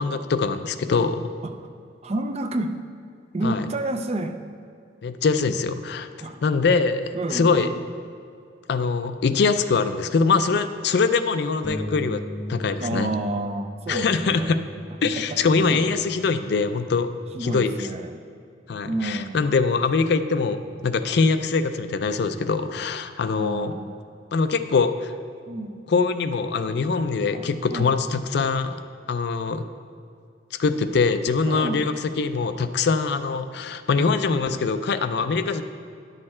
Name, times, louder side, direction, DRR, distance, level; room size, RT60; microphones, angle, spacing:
voice 1, 0.0-1.3 3.4-3.7 5.0-6.1 6.4-7.7 8.7-12.2 12.5-13.1 13.9-14.6 15.0-17.1 17.4-17.9 18.7-23.7 24.3-25.1 25.9-28.8 29.1-29.6 30.6-35.6, left 4 dB, 60° left, 10 dB, 0.4 m, -23 dB
voice 2, 2.0-2.8 3.3-4.4 6.2-6.4 7.1-7.7 12.8-14.6 15.1-15.4 15.7-15.8 17.3-18.2 18.9-19.4 23.4-24.0 25.5-25.8 27.3-27.9 31.5-31.8, right 2 dB, 35° right, 7 dB, 0.4 m, -30 dB
Bass guitar, 11.6-17.9, equal, 25° left, 0.8 m, -38 dB
10.5 x 6.5 x 4.3 m, 2.4 s
head